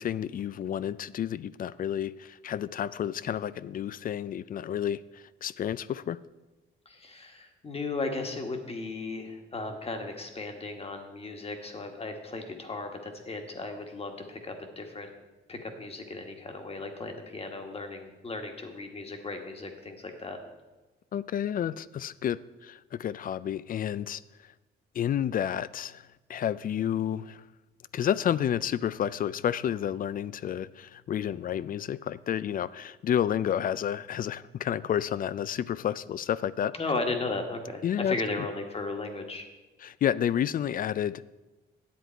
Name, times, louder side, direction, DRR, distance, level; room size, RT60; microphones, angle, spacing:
voice 1, 0.0-6.2 21.1-24.5 24.9-27.4 27.9-36.7 37.8-38.2 39.8-41.2, left 9 dB, 45° left, 18 dB, 0.4 m, -30 dB
voice 2, 6.8-15.1 15.5-20.4 36.7-39.5, left 3 dB, 30° left, 4 dB, 1.6 m, -36 dB
10.0 x 8.0 x 4.5 m, 1.1 s
cardioid pair, 90°, 20 cm